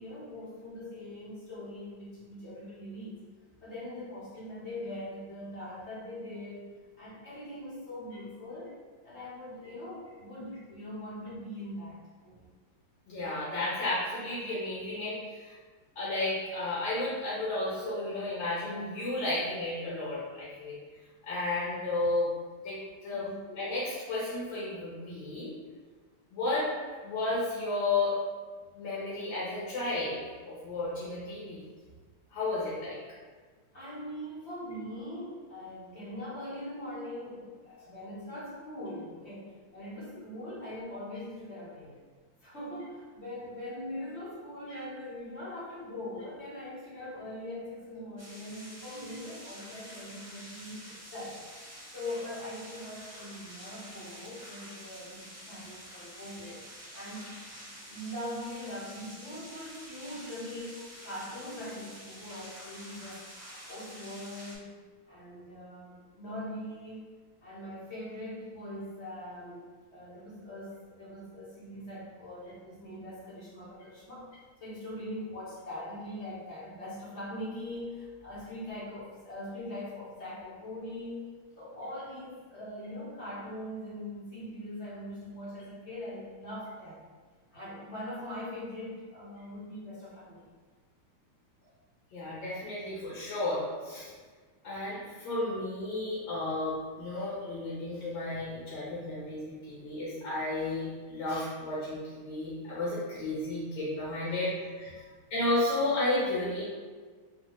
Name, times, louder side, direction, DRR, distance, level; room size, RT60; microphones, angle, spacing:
voice 1, 0.0-3.2 3.6-6.6 7.0-8.7 9.0-12.4 23.1-23.4 33.7-42.0 42.4-51.4 51.9-56.6 56.9-57.3 57.9-64.7 65.1-67.1 67.4-69.7 69.9-74.3 74.6-81.3 81.6-87.0 87.5-90.5 104.2-104.4 104.9-105.1, left 1 dB, 40° left, -9 dB, 1.1 m, -42 dB
voice 2, 13.1-15.5 15.9-20.8 21.2-22.3 22.6-25.5 26.3-26.7 27.0-28.2 28.7-31.6 32.3-33.0 92.1-94.1 94.6-104.9 105.3-106.6, left 2 dB, 65° left, -8 dB, 1.7 m, -33 dB
sound 1, 48.2-64.5, equal, 20° right, 0.4 m, -48 dB
4.1 x 2.8 x 3.1 m, 1.5 s
omnidirectional pair, 2.4 m